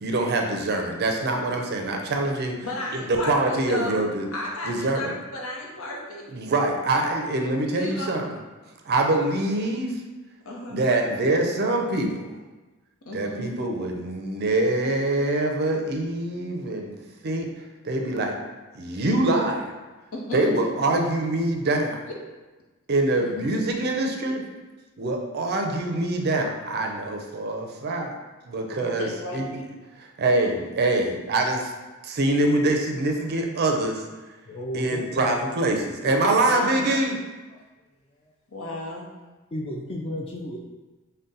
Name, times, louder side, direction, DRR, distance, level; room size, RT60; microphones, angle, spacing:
voice 1, 0.0-2.6 2.9-4.3 4.6-5.1 6.3-8.3 8.8-10.0 10.7-12.4 13.1-16.9 17.2-17.5 17.8-18.4 18.7-19.7 20.3-22.0 22.9-24.4 25.0-28.1 28.5-29.6 30.0-31.7 32.0-34.0 34.7-37.2, right 2 dB, 50° right, 2 dB, 0.5 m, -24 dB
voice 2, 2.6-4.0 4.3-6.2 7.7-8.1 10.4-10.8 13.0-13.5 20.1-20.6 23.1-23.5 28.7-29.4 36.4-37.0 38.5-39.1, left 1 dB, 70° left, -2 dB, 0.8 m, -34 dB
voice 3, 34.5-35.3 36.0-36.1 39.5-40.6, equal, 25° left, -1 dB, 0.3 m, -33 dB
3.8 x 2.2 x 3.8 m, 1.2 s
head